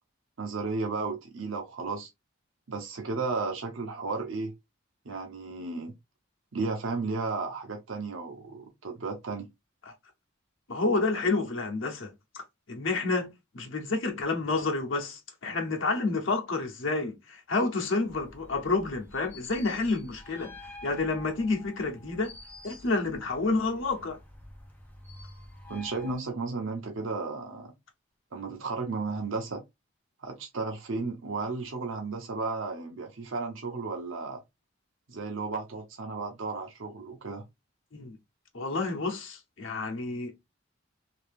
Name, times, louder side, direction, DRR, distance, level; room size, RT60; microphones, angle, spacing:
voice 1, 0.4-2.1 2.7-4.5 5.0-5.9 6.5-9.5 25.7-27.7 28.3-29.6 30.2-34.4 35.1-37.4, right 3 dB, 75° right, 0.8 m, -34 dB
voice 2, 10.7-12.1 12.3-20.5 20.8-22.3 22.6-24.2 37.9-38.2 38.5-40.4, left 3 dB, 75° left, 0.9 m, -29 dB
sound 1, 18.0-26.2, left 2 dB, 10° left, 0.6 m, -49 dB
2.8 x 2.8 x 3.4 m
head